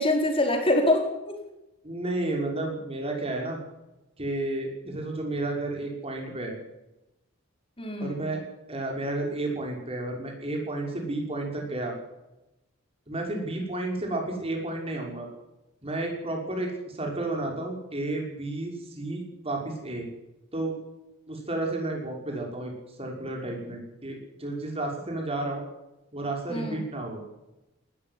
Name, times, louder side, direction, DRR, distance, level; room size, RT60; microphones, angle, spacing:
voice 1, 0.0-1.4 7.8-8.3 26.5-26.8, left 1 dB, 25° left, 3 dB, 4.6 m, -25 dB
voice 2, 1.8-3.6 4.2-6.6 8.0-8.4 8.7-11.9 13.1-15.3 15.8-20.1 20.5-20.7 21.3-22.7 23.0-25.6 26.1-27.2, right 2 dB, 30° right, 1 dB, 6.0 m, -32 dB
19.5 x 13.5 x 10.0 m, 0.95 s
head